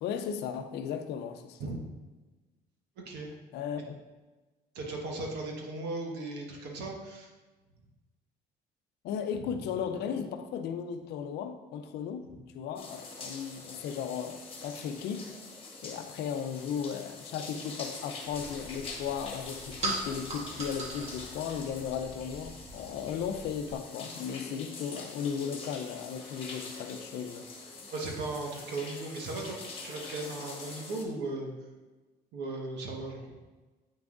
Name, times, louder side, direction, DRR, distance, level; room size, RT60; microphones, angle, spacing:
voice 1, 0.0-1.6 3.5-4.0 9.0-15.4 15.8-27.7, left 7 dB, 80° left, 0.6 m, -36 dB
voice 2, 3.0-3.3 4.7-7.3 9.4-9.5 12.2-12.4 27.9-29.6 29.8-31.5 32.3-33.2, right 2 dB, 85° right, 1.4 m, -37 dB
sound 1, 12.8-31.0, left 3 dB, 35° left, 1.3 m, -45 dB
sound 2, 18.3-23.7, right 2 dB, 40° right, 1.4 m, -41 dB
8.5 x 5.9 x 2.6 m
cardioid pair, 110°, 17 cm